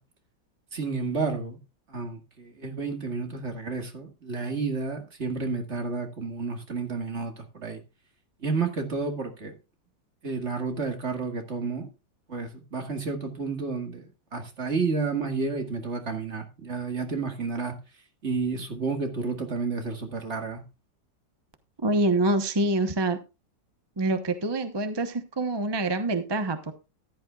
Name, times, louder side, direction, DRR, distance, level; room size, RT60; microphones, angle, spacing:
voice 1, 0.7-1.6 1.9-7.8 8.4-9.5 10.2-11.9 12.3-14.0 14.3-17.8 18.2-20.6, right 4 dB, 40° right, 2.2 m, -31 dB
voice 2, 21.8-23.2 24.0-26.7, right 2 dB, 25° right, 0.6 m, -26 dB
14.5 x 11.0 x 2.4 m
omnidirectional pair, 2.0 m